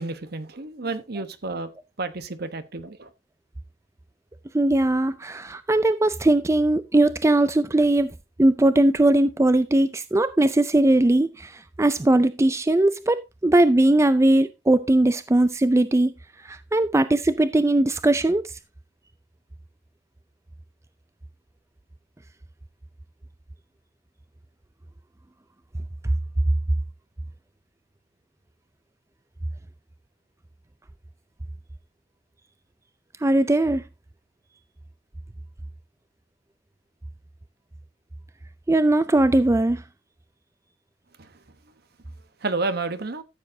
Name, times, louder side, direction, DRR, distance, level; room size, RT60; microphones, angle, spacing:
voice 1, 0.0-1.7 2.0-3.1 42.4-43.2, right 3 dB, 60° right, 1.1 m, -30 dB
voice 2, 4.5-8.1 8.4-11.5 11.8-13.2 13.4-16.1 16.5-18.4 33.2-33.8 38.7-39.8, right 1 dB, 15° right, 0.4 m, -19 dB
13.5 x 7.5 x 2.7 m
head